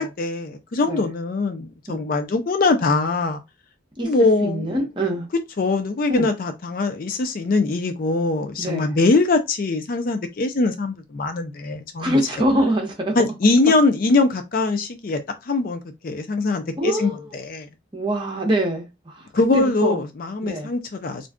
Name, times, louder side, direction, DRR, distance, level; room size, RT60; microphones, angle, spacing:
voice 1, 0.0-3.4 4.0-4.8 5.6-12.2 13.2-15.2 15.5-17.7 19.3-21.3, left 3 dB, 45° left, 0.4 m, -22 dB
voice 2, 4.4-5.3 6.1-6.3 8.6-8.9 12.0-13.1 16.8-17.3 17.9-19.1 19.5-20.0 20.4-20.7, right 1 dB, 25° right, 0.9 m, -24 dB
2.5 x 2.3 x 3.5 m
head